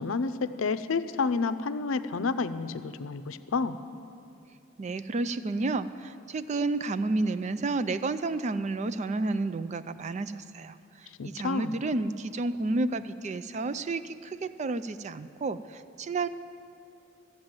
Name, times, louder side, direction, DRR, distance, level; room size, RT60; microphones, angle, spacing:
voice 1, 0.0-3.8 11.2-11.8, left 4 dB, 85° left, 11 dB, 0.5 m, -30 dB
voice 2, 4.8-10.7 11.2-16.3, right 3 dB, 35° right, 13 dB, 0.4 m, -31 dB
13.5 x 7.7 x 8.9 m, 2.6 s
head